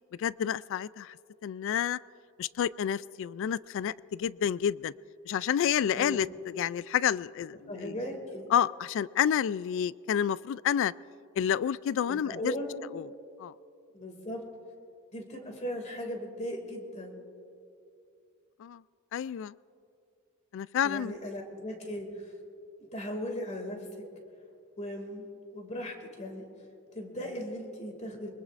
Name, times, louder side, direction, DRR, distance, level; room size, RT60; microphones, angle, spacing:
voice 1, 0.2-1.2 1.4-2.0 2.4-4.9 5.3-8.0 8.5-10.9 11.4-12.5 12.9-13.1 13.4-13.5 18.6-18.8 19.1-19.5 20.5-21.2, left 9 dB, 65° left, 20 dB, 0.3 m, -29 dB
voice 2, 7.7-8.5 12.1-12.9 13.9-14.4 15.1-17.1 20.8-22.3 22.8-23.9 24.8-26.5 26.9-28.3, equal, 35° left, 3 dB, 2.3 m, -38 dB
23.5 x 21.0 x 2.5 m, 2.5 s
head